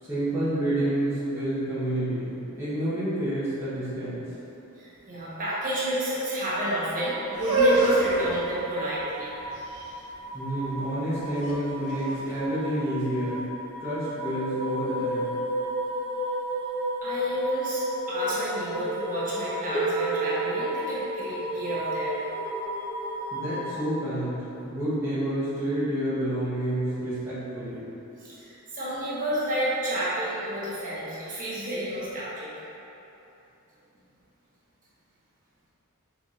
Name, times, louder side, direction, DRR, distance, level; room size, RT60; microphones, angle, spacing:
voice 1, 0.0-4.2 10.3-13.5 13.8-15.4 23.3-27.9, right 1 dB, 10° right, -13 dB, 0.8 m, -29 dB
voice 2, 4.7-9.3 17.0-22.2 28.2-32.5, equal, 40° right, -9 dB, 1.0 m, -30 dB
sound 1, 6.4-23.8, equal, 55° right, 1.1 m, -34 dB
sound 2, 7.3-13.2, right 2 dB, 90° right, 0.8 m, -27 dB
Harp, 19.7-25.5 26.6-26.7, right 5 dB, 30° left, 0.6 m, -35 dB
4.6 x 4.0 x 2.4 m, 3.0 s
head